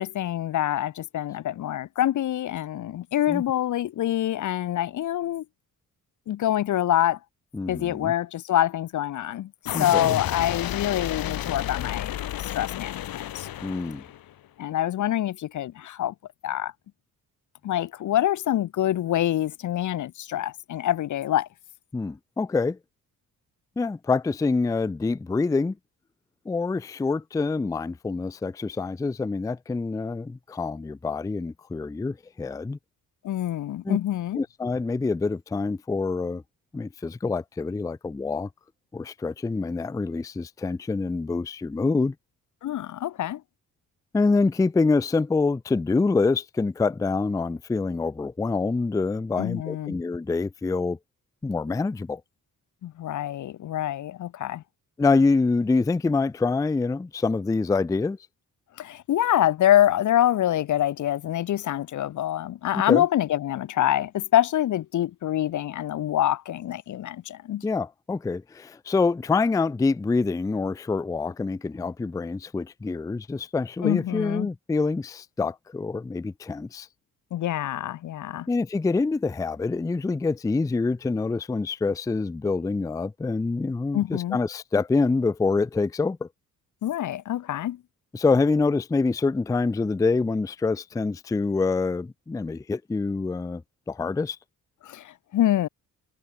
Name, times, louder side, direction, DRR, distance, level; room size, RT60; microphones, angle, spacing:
voice 1, 0.0-5.4 6.3-7.2 7.7-9.5 9.8-12.1 12.4-13.5 14.6-16.1 16.4-16.7 17.6-21.5 33.2-34.4 42.6-43.4 49.4-49.9 52.8-54.6 58.8-67.6 73.8-74.5 77.3-78.5 83.9-84.4 86.8-87.8 94.8-95.7, left 12 dB, 55° left, 0.6 m, -25 dB
voice 2, 7.5-8.1 9.7-10.2 13.6-14.0 21.9-22.8 23.8-25.7 26.5-32.8 33.8-34.0 34.4-36.4 36.7-38.5 38.9-42.1 44.1-51.0 51.4-52.2 55.0-58.2 62.9-63.0 67.6-76.9 78.5-86.3 88.1-93.6 93.9-94.4, left 3 dB, 10° left, 0.4 m, -26 dB
sound 1, 9.7-14.3, left 12 dB, 75° left, 1.5 m, -31 dB
cardioid pair, 95°, 35 cm